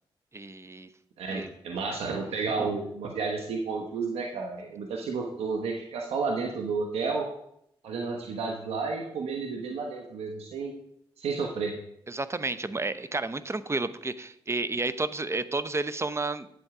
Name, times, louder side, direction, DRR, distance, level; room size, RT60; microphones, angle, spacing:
voice 1, 0.3-0.9 1.3-1.5 12.1-16.5, right 3 dB, 25° right, 13 dB, 0.8 m, -31 dB
voice 2, 1.2-7.3 7.8-10.7 11.2-11.7, right 4 dB, 90° right, 2 dB, 1.1 m, -31 dB
8.6 x 8.0 x 4.9 m, 0.73 s
cardioid pair, 55°, 10 cm